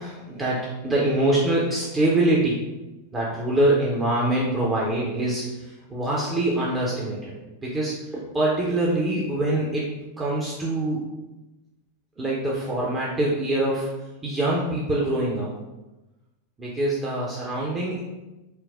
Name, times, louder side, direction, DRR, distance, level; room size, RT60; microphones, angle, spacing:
voice 1, 0.0-2.6 3.1-11.1 12.2-13.9 14.2-15.5 16.6-18.0, right 1 dB, 20° right, -5 dB, 0.7 m, -24 dB
4.5 x 2.0 x 3.5 m, 1.0 s
figure-of-eight pair, 90°, 0 cm